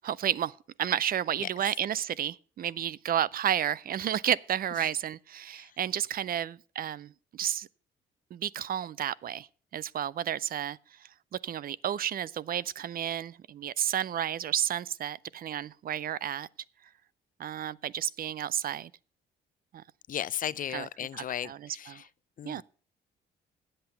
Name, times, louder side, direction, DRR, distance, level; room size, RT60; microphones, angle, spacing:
voice 1, 0.0-7.7 8.3-9.5 9.7-10.8 11.4-16.5 17.4-18.9 19.7-19.8 20.7-20.9 21.1-22.0 22.4-22.6, right 10 dB, 50° right, 0.4 m, -31 dB
voice 2, 20.1-22.1 22.4-22.6, left 10 dB, 45° left, 0.4 m, -35 dB
8.7 x 7.7 x 6.9 m
cardioid pair, 90°, 20 cm